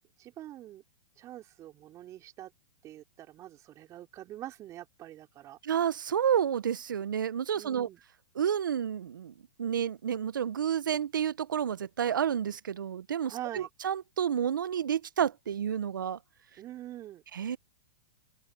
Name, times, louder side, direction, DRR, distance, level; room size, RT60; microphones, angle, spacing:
voice 1, 0.2-0.8 1.2-2.5 2.8-5.6 7.6-8.0 13.3-13.7 16.6-17.2, right 13 dB, 30° right, 3.5 m, -44 dB
voice 2, 5.6-7.9 8.3-9.3 9.6-16.2 17.3-17.6, right 8 dB, 80° right, 0.9 m, -30 dB
open air
hypercardioid pair, 120°, 10 cm